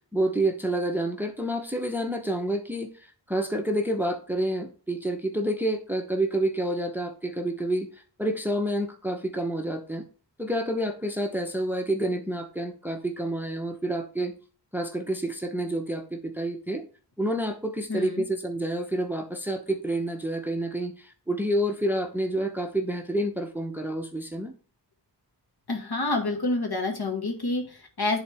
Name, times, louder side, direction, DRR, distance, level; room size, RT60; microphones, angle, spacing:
voice 1, 0.1-7.9 8.2-10.0 10.4-14.3 14.7-16.8 17.2-24.5, right 1 dB, 5° right, 5 dB, 0.9 m, -28 dB
voice 2, 17.9-18.2 25.7-28.2, left 2 dB, 60° left, 3 dB, 2.0 m, -28 dB
10.0 x 4.1 x 3.5 m, 0.38 s
wide cardioid pair, 65°, 42 cm